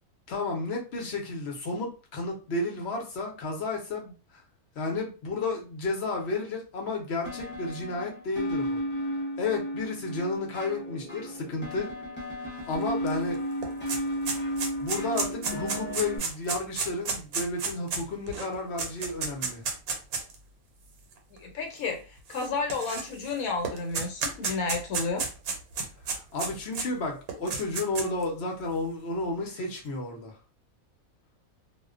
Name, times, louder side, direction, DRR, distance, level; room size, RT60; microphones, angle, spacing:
voice 1, 0.3-4.1 4.8-8.8 9.4-11.9 12.7-13.4 14.8-19.6 26.2-30.3, left 3 dB, 55° left, 0.8 m, -32 dB
sound 1, 7.3-16.2, equal, 10° left, 0.6 m, -34 dB
sound 2, 13.1-13.2 13.4-20.3 21.1-21.2 22.3-23.3 23.6-26.9 27.3-28.2, right 4 dB, 85° right, 1.1 m, -32 dB
voice 2, 21.4-25.3, left 4 dB, 75° left, 1.1 m, -31 dB
2.4 x 2.1 x 2.4 m
omnidirectional pair, 1.5 m